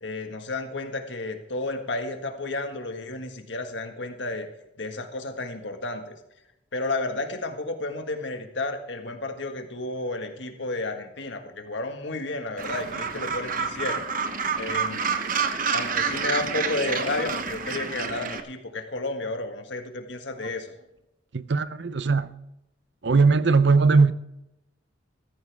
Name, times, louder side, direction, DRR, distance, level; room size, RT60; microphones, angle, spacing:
voice 1, 0.0-4.5 4.8-6.1 6.7-14.0 14.6-15.2 15.7-20.8, left 2 dB, 65° left, 1.7 m, -32 dB
Gull seagull, 12.6-18.4, right 5 dB, 45° right, 1.0 m, -28 dB
voice 2, 21.3-22.3 23.0-24.1, right 4 dB, 60° right, 0.6 m, -19 dB
14.5 x 14.5 x 3.5 m
head